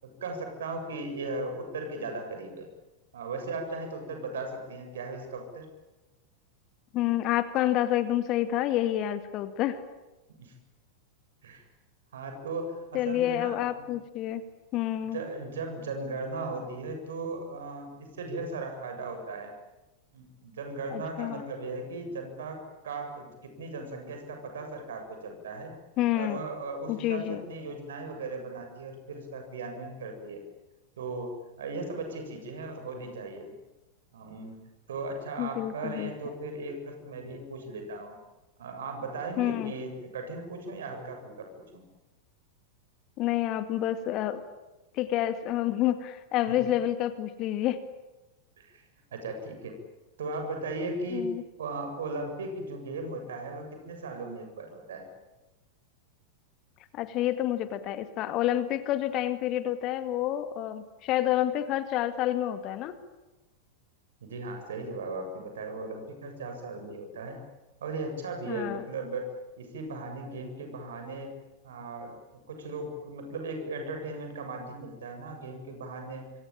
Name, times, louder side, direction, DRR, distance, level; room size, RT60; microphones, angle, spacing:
voice 1, 0.0-2.7 3.1-5.7 10.4-10.5 11.4-11.6 12.1-13.9 15.0-19.5 20.1-25.7 26.1-30.4 31.0-31.3 31.6-33.5 34.1-34.6 34.9-38.2 38.6-41.5 41.7-41.8 46.5-46.6 48.6-48.8 49.1-49.8 50.2-51.3 51.6-55.1 64.2-67.4 67.8-69.3 69.6-71.3 71.6-72.1 72.5-76.3, right 2 dB, 60° right, 5 dB, 7.6 m, -37 dB
voice 2, 6.9-9.8 12.9-14.4 14.7-15.2 20.9-21.4 26.0-26.4 26.9-27.4 35.4-36.1 39.4-39.7 43.2-44.4 44.9-47.8 51.1-51.4 56.9-63.0 68.5-68.8, left 13 dB, 40° left, 10 dB, 2.2 m, -28 dB
26.5 x 25.0 x 8.9 m, 1.1 s
figure-of-eight pair, 90°, 0 cm